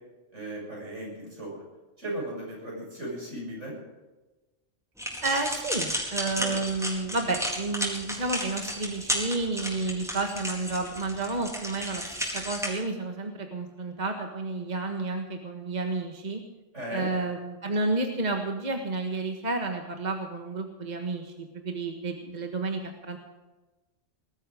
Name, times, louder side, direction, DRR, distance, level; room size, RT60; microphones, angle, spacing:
voice 1, 0.3-1.6 2.0-3.8 6.4-6.6 16.7-17.1, right 1 dB, 70° right, -2 dB, 7.8 m, -36 dB
sound 1, 5.0-12.7, equal, ahead, 4.3 m, -33 dB
voice 2, 5.2-12.0 12.3-16.4 16.9-23.2, right 3 dB, 35° right, 4 dB, 1.6 m, -31 dB
20.0 x 13.5 x 5.1 m, 1.2 s
omnidirectional pair, 1.3 m